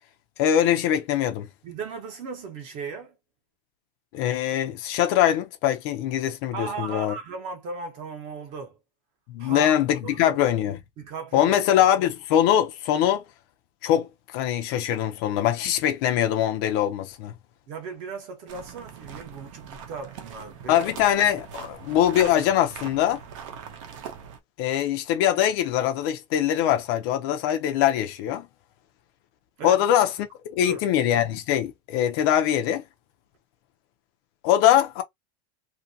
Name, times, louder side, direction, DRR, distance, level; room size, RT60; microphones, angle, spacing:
voice 1, 0.4-1.5 4.1-7.1 9.3-10.8 11.3-13.2 13.8-17.3 20.7-23.2 24.6-28.5 29.6-30.1 30.5-32.8 34.4-35.0, left 11 dB, 40° left, 0.5 m, -22 dB
voice 2, 1.6-3.2 6.5-8.8 9.4-9.7 10.0-10.4 11.0-11.8 17.7-20.8 29.6-29.8 30.6-30.8, right 5 dB, 35° right, 0.9 m, -36 dB
sound 1, 18.5-24.4, right 7 dB, 60° right, 0.8 m, -41 dB
2.7 x 2.6 x 2.7 m
supercardioid pair, 175°, 19 cm